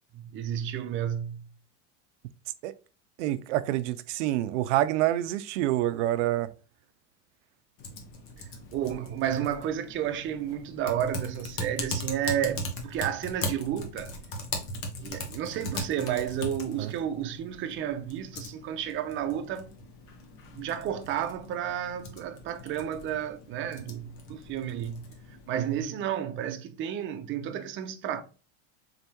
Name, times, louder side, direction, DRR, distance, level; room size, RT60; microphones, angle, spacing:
voice 1, 0.1-1.5 8.4-8.5 8.7-14.1 15.0-19.8 20.5-25.1 25.5-28.2, right 10 dB, 35° right, 0.6 m, -32 dB
voice 2, 3.2-6.5 16.8-16.9 25.6-25.7, right 14 dB, 90° right, 0.5 m, -27 dB
Typing, 7.8-25.8, left 1 dB, 60° left, 1.2 m, -39 dB
3.9 x 3.5 x 2.8 m
supercardioid pair, 130°, 35 cm